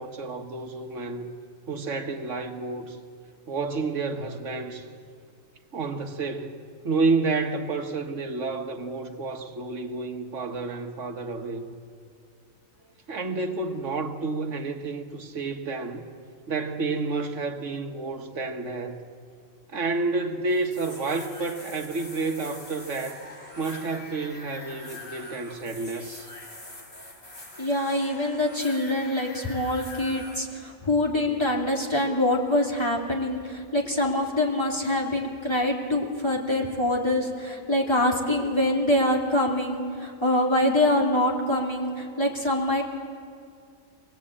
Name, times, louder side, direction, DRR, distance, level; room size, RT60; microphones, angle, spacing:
voice 1, 0.0-1.4 1.7-3.0 3.5-4.9 5.7-11.7 13.1-16.1 16.5-19.0 19.7-23.2 23.6-26.3, right 3 dB, 70° right, 6 dB, 1.5 m, -30 dB
sound 1, 20.5-30.4, left 2 dB, 50° left, 3.4 m, -44 dB
voice 2, 27.6-42.8, left 1 dB, 20° left, -2 dB, 2.8 m, -25 dB
25.0 x 18.5 x 8.6 m, 2.2 s
omnidirectional pair, 1.4 m